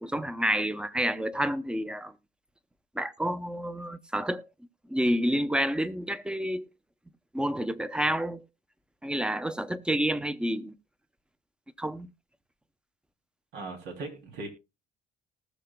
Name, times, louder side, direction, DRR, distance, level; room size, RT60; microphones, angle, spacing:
voice 1, 0.0-2.1 2.9-4.5 4.9-6.7 7.3-8.5 9.0-10.7 11.8-12.1, equal, 5° right, 0.7 m, -29 dB
voice 2, 13.5-14.5, right 3 dB, 85° right, 3.0 m, -38 dB
19.0 x 6.7 x 2.2 m
cardioid pair, 110°, 17 cm